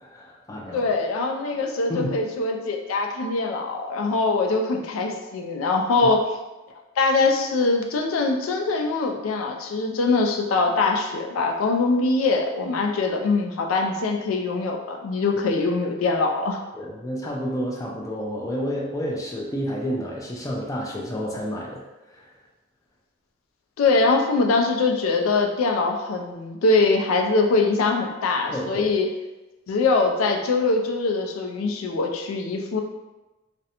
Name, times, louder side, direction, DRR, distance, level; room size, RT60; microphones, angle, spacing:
voice 1, 0.0-0.9 1.9-2.2 16.7-22.3 28.5-28.9, equal, 15° left, -3 dB, 0.3 m, -30 dB
voice 2, 0.7-6.2 7.0-16.6 23.8-29.1 29.7-32.8, left 3 dB, 85° left, 3 dB, 0.4 m, -23 dB
2.5 x 2.1 x 2.8 m, 1.1 s
head